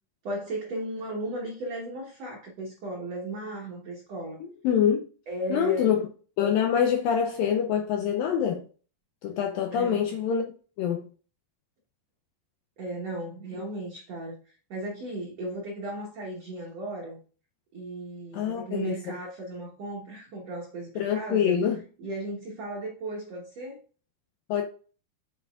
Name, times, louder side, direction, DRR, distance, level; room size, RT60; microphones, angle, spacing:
voice 1, 0.2-4.4 5.3-6.0 9.7-10.1 12.8-17.2 17.7-21.6 22.0-23.8, right 1 dB, 80° right, 1.4 m, -36 dB
voice 2, 4.4-5.0 5.5-6.1 6.4-8.6 9.2-10.4 10.8-11.0 18.3-19.0 21.0-21.8 24.5-24.6, left 8 dB, 80° left, 2.0 m, -25 dB
6.8 x 6.7 x 2.4 m
omnidirectional pair, 4.8 m